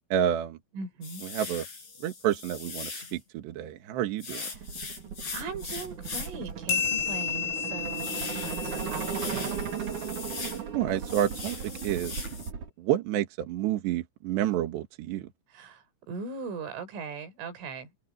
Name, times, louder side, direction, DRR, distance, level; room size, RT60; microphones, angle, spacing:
voice 1, 0.1-0.6 1.3-1.6 2.0-4.5 10.7-11.6 11.8-12.1 12.8-15.3, right 11 dB, 70° right, 3.7 m, -29 dB
voice 2, 0.7-1.2 4.5-4.7 5.3-9.5 15.5-18.0, right 4 dB, 85° right, 6.8 m, -39 dB
sound 1, 1.0-3.2 4.2-6.5 6.9-7.0 7.4-10.6 10.9-12.5, left 4 dB, 40° left, 6.4 m, -40 dB
sound 2, 4.5-12.7, right 7 dB, 45° right, 3.4 m, -36 dB
sound 3, 6.7-9.7, left 8 dB, 80° left, 10.5 m, -32 dB
open air
omnidirectional pair, 5.5 m